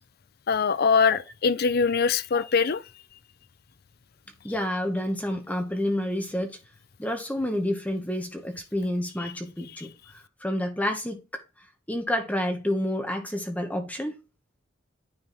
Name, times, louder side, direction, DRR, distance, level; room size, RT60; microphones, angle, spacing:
voice 1, 0.5-2.8, left 5 dB, 50° left, 0.5 m, -22 dB
voice 2, 4.4-6.6 7.0-11.4 11.9-14.2, left 1 dB, 10° left, 1.3 m, -29 dB
9.9 x 3.5 x 4.3 m
head